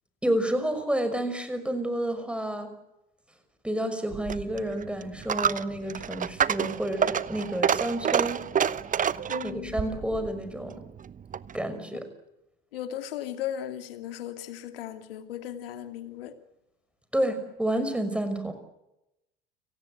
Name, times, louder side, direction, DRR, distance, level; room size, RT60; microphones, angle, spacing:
voice 1, 0.2-2.7 3.6-8.5 9.4-10.8 11.5-12.1 17.1-18.5, right 1 dB, 5° right, 9 dB, 5.9 m, -30 dB
Coin (dropping), 4.1-11.6, right 8 dB, 25° right, 1.0 m, -29 dB
voice 2, 9.3-9.7 12.7-16.3, left 11 dB, 70° left, 8 dB, 2.6 m, -36 dB
30.0 x 18.5 x 8.1 m, 0.90 s
figure-of-eight pair, 65°, 30 cm